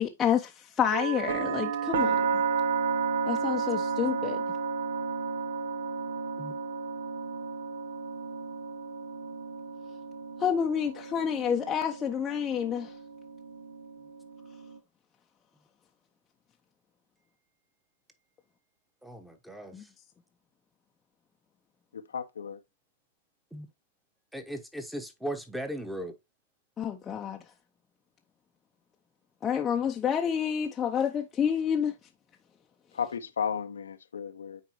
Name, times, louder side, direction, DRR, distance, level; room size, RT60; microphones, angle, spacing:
voice 1, 0.0-2.2 3.3-4.4 10.4-12.9 19.7-19.8 26.8-27.4 29.4-31.9, left 8 dB, 20° left, 0.6 m, -28 dB
sound 1, 0.9-14.8, right 5 dB, 65° right, 0.8 m, -32 dB
voice 2, 19.0-19.7 23.5-23.7 24.3-26.2, right 1 dB, 5° right, 1.1 m, -37 dB
voice 3, 21.9-22.6 32.9-34.6, left 7 dB, 75° left, 0.6 m, -34 dB
9.3 x 4.3 x 3.0 m
hypercardioid pair, 110°, 0 cm